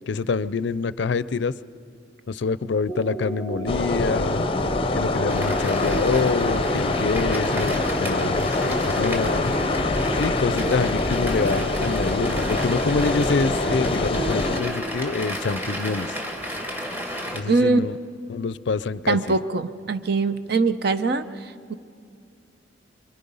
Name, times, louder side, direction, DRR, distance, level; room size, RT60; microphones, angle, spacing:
voice 1, 0.1-1.5 2.3-4.4 4.9-9.5 10.2-16.2 17.3-18.0 18.3-19.2, left 4 dB, 65° left, 17 dB, 0.4 m, -26 dB
sound 1, 2.9-14.8, right 1 dB, 35° right, 5.3 m, -32 dB
sound 2, 3.7-14.6, left 2 dB, 30° left, 0.6 m, -25 dB
sound 3, 5.3-17.4, equal, 10° right, 2.1 m, -33 dB
voice 2, 17.5-17.9 19.1-21.7, right 3 dB, 60° right, 11 dB, 0.8 m, -22 dB
25.0 x 24.0 x 5.5 m, 2.4 s
head